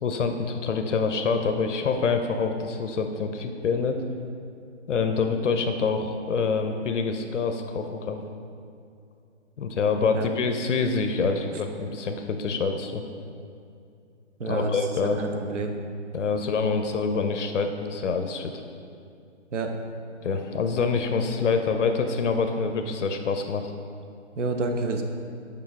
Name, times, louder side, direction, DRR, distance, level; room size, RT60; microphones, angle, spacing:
voice 1, 0.0-4.0 4.9-8.2 9.6-13.0 14.5-15.2 16.1-18.5 20.2-23.7, left 4 dB, 80° left, 6 dB, 0.6 m, -26 dB
voice 2, 14.4-14.8 15.2-15.7 19.5-19.7 24.4-25.0, right 3 dB, 80° right, 4 dB, 0.9 m, -28 dB
6.8 x 5.3 x 3.6 m, 2.5 s
hypercardioid pair, 175°, 36 cm